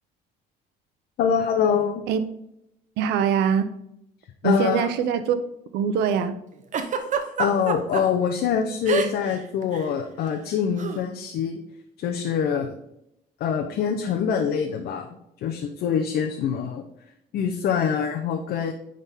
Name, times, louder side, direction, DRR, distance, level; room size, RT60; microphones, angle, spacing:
voice 1, 1.2-2.0 4.4-4.9 7.4-11.6 12.0-12.8 13.4-15.2 15.4-16.8 17.3-18.7, left 7 dB, 70° left, 3 dB, 0.9 m, -24 dB
voice 2, 3.0-3.7 4.4-5.4 5.7-6.3, right 7 dB, 90° right, 11 dB, 0.8 m, -23 dB
Giggle, 6.7-8.0 8.9-9.4 9.6-9.9 10.8-11.0, right 6 dB, 45° right, 1.0 m, -26 dB
9.7 x 3.9 x 3.6 m, 0.80 s
cardioid pair, 110°, 17 cm